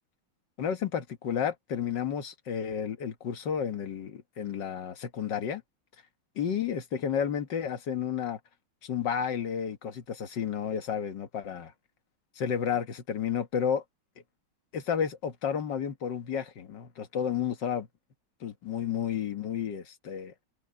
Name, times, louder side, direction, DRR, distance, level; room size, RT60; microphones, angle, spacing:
voice 1, 0.6-5.6 6.4-8.4 8.8-11.7 12.4-13.8 14.7-17.9 18.4-20.3, left 8 dB, 60° left, 2.0 m, -31 dB
omnidirectional pair, 2.3 m